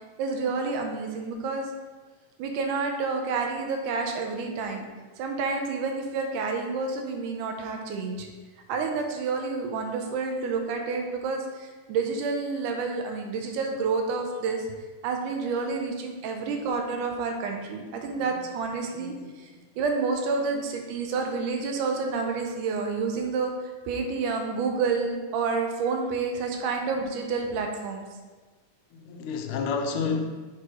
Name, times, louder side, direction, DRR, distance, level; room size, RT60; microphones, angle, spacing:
voice 1, 0.2-1.7 2.4-4.9 5.2-8.3 8.7-14.7 15.0-19.1 19.4-19.5 19.8-23.5 23.9-28.0, right 4 dB, 90° right, 3 dB, 2.3 m, -29 dB
voice 2, 18.0-18.4 19.0-19.3 28.9-30.4, left 5 dB, 85° left, 3 dB, 2.1 m, -31 dB
6.4 x 3.0 x 4.9 m, 1.3 s
omnidirectional pair, 3.5 m